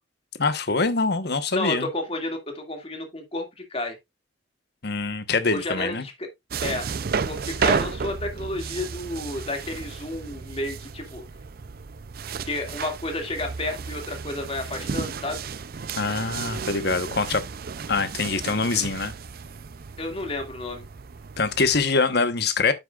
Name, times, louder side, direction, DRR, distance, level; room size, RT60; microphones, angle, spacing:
voice 1, 0.4-1.9 4.8-6.0 16.0-17.4 17.9-19.1 21.4-22.7, left 4 dB, 55° left, 1.2 m, -24 dB
voice 2, 1.5-4.0 5.5-6.3 6.6-6.9 7.3-11.2 12.4-15.5 20.0-20.9, left 2 dB, 30° left, 2.3 m, -31 dB
sound 1, 6.5-21.8, right 5 dB, 50° right, 0.5 m, -32 dB
9.8 x 7.7 x 2.5 m
head